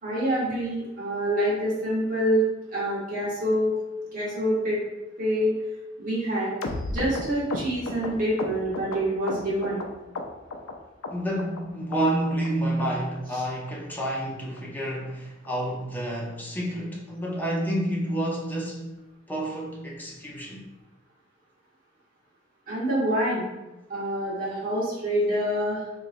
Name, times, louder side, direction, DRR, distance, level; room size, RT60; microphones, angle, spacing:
voice 1, 0.0-2.4 2.7-3.7 4.1-4.8 5.2-5.5 6.0-6.5 6.9-9.8 22.7-23.4 23.9-25.8, equal, 45° right, -8 dB, 1.5 m, -26 dB
sound 1, 6.6-9.9 10.1-10.7 11.0-11.6 11.9-12.0 12.3-12.5 12.8-12.9 13.2-13.4 13.7-13.8 14.0-14.2 14.6-14.7 14.9-15.1 15.4-15.5 15.8-16.0 16.3-16.4, left 2 dB, 90° left, 0.5 m, -33 dB
voice 2, 11.1-18.9 19.3-20.6, right 1 dB, 10° left, -3 dB, 0.6 m, -29 dB
3.9 x 3.0 x 2.5 m, 1.0 s
head